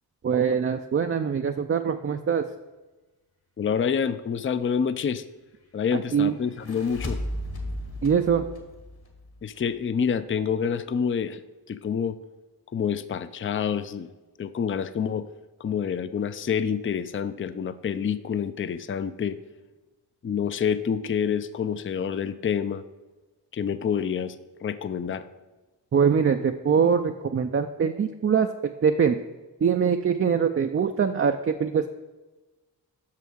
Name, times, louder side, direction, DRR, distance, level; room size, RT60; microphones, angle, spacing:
voice 1, 0.2-2.4 5.9-6.4 8.0-8.5 25.9-28.5 28.8-29.2 29.6-31.9, right 6 dB, 30° right, 6 dB, 0.4 m, -23 dB
voice 2, 3.6-5.2 5.7-7.2 9.4-11.4 11.7-12.2 12.7-14.1 14.4-15.3 15.6-19.4 20.2-22.8 23.5-24.4 24.6-25.2, left 7 dB, 30° left, 13 dB, 0.4 m, -27 dB
sound 1, 6.4-9.8, left 1 dB, 55° left, 1.8 m, -35 dB
6.1 x 5.7 x 6.2 m, 1.2 s
cardioid pair, 55°, 43 cm